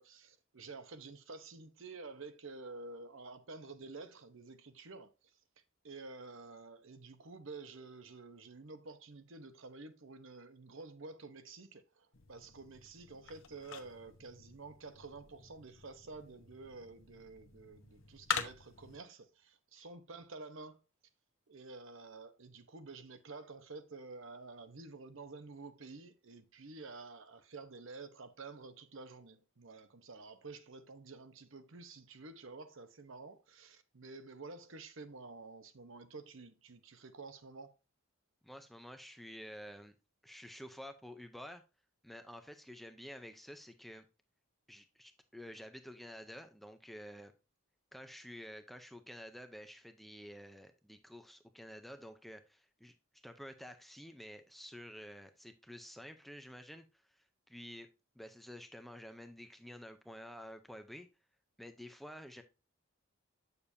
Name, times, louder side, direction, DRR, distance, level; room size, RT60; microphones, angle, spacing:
voice 1, 0.0-5.1 5.8-20.8 21.5-37.7, right 3 dB, 65° right, 0.8 m, -50 dB
sound 1, 12.1-19.0, left 6 dB, 60° left, 0.9 m, -45 dB
voice 2, 38.4-39.9 40.2-41.6 42.0-44.1 44.7-47.3 47.9-57.9 58.2-61.1 61.6-62.4, equal, ahead, 0.5 m, -50 dB
8.5 x 6.8 x 2.7 m
head